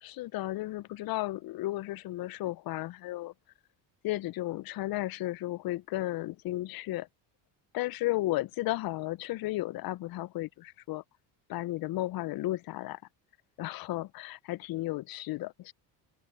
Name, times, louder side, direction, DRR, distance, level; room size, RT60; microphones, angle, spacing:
voice 1, 0.0-3.3 4.0-7.1 7.7-11.0 11.5-13.0 13.6-15.7, left 17 dB, 50° left, 0.6 m, -34 dB
open air
supercardioid pair, 85°, 46 cm